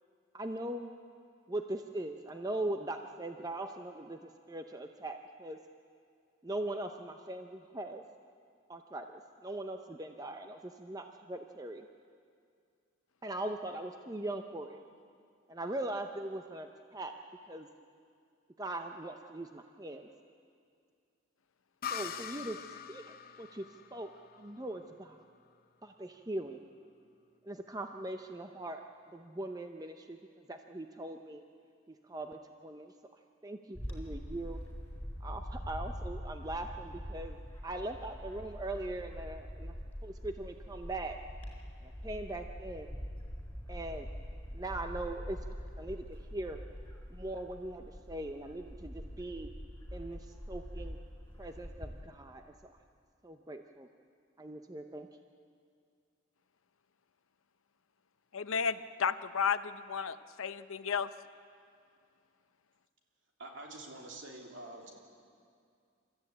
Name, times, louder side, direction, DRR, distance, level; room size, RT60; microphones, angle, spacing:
voice 1, 0.3-1.0 1.5-4.2 4.5-5.6 6.4-8.0 8.7-11.9 13.2-14.8 15.5-17.1 17.5-17.7 18.6-20.1 21.9-24.1 24.4-25.2 25.8-26.6 27.4-28.8 29.1-31.4 31.9-32.9 33.4-34.6 35.2-37.4 37.6-39.7 40.0-41.2 41.8-42.9 43.7-44.1 44.5-45.4 45.8-46.6 47.1-49.5 49.9-51.0 51.4-52.7 53.2-53.9 54.4-55.1, right 1 dB, 20° right, 5 dB, 0.7 m, -40 dB
sound 1, 21.8-25.4, left 8 dB, 45° left, 0.8 m, -43 dB
Bird / Wind, 33.7-52.0, equal, 10° left, 4.2 m, -44 dB
voice 2, 58.3-61.1, left 6 dB, 80° left, 12 dB, 0.7 m, -33 dB
voice 3, 63.4-64.9, right 2 dB, 60° right, 0 dB, 3.2 m, -46 dB
27.5 x 14.0 x 8.6 m, 2.3 s
head